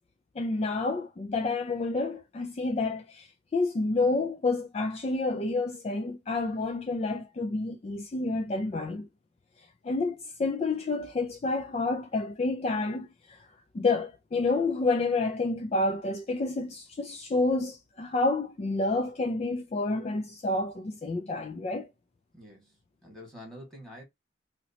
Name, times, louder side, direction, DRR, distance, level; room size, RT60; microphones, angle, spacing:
voice 1, 0.4-9.1 9.8-13.5 13.7-21.9, left 3 dB, 35° left, 0.3 m, -29 dB
voice 2, 22.3-24.0, equal, 5° left, 1.6 m, -47 dB
3.0 x 2.8 x 2.8 m
head